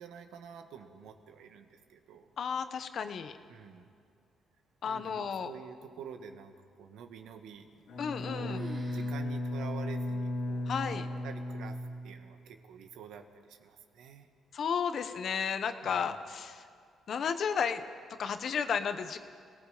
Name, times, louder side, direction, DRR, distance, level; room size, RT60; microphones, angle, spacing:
voice 1, 0.0-2.3 3.5-3.9 4.8-7.7 8.3-11.8 12.0-14.3 15.8-16.2, right 7 dB, 85° right, 6 dB, 1.6 m, -48 dB
voice 2, 2.4-3.4 4.8-5.5 8.0-8.6 10.7-11.1 14.5-16.7 17.1-17.8 18.2-19.2, left 6 dB, 60° left, 9 dB, 1.3 m, -33 dB
sound 1, 7.7-8.2 8.5-9.2 9.6-9.7 10.3-10.4 11.2-11.6, right 4 dB, 40° right, 1.2 m, -47 dB
Bowed string instrument, 7.9-12.6, left 1 dB, 80° left, 3.4 m, -36 dB
29.5 x 18.5 x 5.2 m, 2.2 s
cardioid pair, 90°, 0 cm